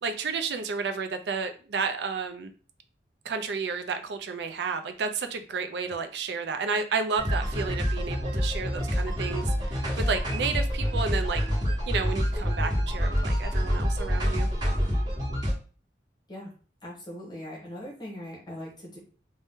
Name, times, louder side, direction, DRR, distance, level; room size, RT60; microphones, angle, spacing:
voice 1, 0.0-2.5 3.2-11.4 11.9-14.5, right 5 dB, 70° right, 8 dB, 0.4 m, -31 dB
sound 1, 7.2-15.5, equal, 25° right, 1.2 m, -27 dB
voice 2, 16.8-19.0, equal, 25° left, -3 dB, 0.8 m, -40 dB
2.7 x 2.1 x 3.5 m, 0.38 s
head